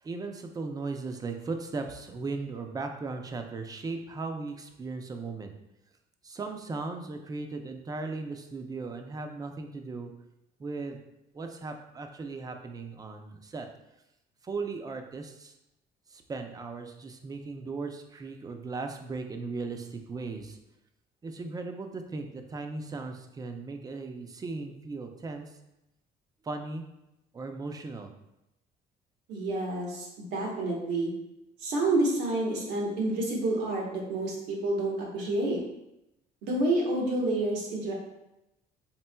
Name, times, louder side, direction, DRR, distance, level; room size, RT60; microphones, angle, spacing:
voice 1, 0.0-5.5 6.2-10.1 10.6-11.0 11.3-13.7 14.4-15.5 16.1-20.6 21.2-25.5 26.4-26.8 27.3-28.1, right 3 dB, 20° right, 5 dB, 0.4 m, -37 dB
voice 2, 29.3-31.1 31.6-35.6 36.4-37.9, right 2 dB, 85° right, -1 dB, 1.1 m, -29 dB
4.3 x 3.6 x 2.2 m, 0.88 s
cardioid pair, 110°, 17 cm